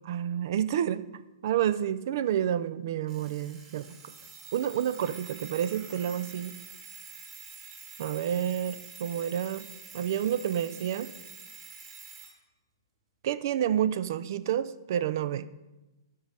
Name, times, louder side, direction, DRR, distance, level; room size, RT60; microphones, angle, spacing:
voice 1, 0.0-1.0 1.4-3.9 4.5-6.5 8.0-9.7 9.9-11.1 13.2-15.5, right 10 dB, 50° right, 15 dB, 0.4 m, -29 dB
Alarm, 3.1-12.3, right 5 dB, 30° right, 1.8 m, -47 dB
12.5 x 5.1 x 3.4 m, 1.0 s
figure-of-eight pair, 115°, 2 cm